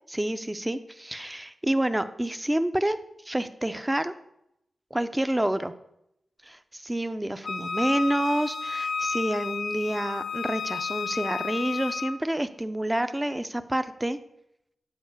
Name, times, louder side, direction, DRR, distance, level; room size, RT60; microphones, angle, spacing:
voice 1, 0.1-3.0 3.3-4.1 4.9-5.7 6.4-14.2, right 1 dB, 10° right, 11 dB, 0.6 m, -28 dB
Wind instrument woodwind instrument, 7.4-12.2, left 5 dB, 55° left, 0.5 m, -32 dB
9.5 x 4.8 x 7.2 m, 0.80 s
wide cardioid pair, 115°, 0 cm